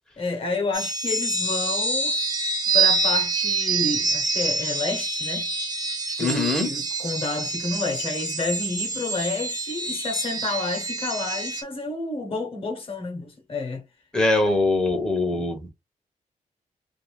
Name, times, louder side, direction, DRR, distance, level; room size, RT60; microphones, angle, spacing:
voice 1, 0.2-2.2 2.7-5.5 6.1-13.8 15.3-15.7, left 3 dB, 40° left, 1.0 m, -30 dB
sound 1, 0.7-11.6, right 3 dB, 25° right, 0.8 m, -26 dB
voice 2, 6.2-6.7 14.1-15.6, left 2 dB, 5° left, 0.7 m, -22 dB
2.6 x 2.5 x 3.1 m
wide cardioid pair, 175°, 14 cm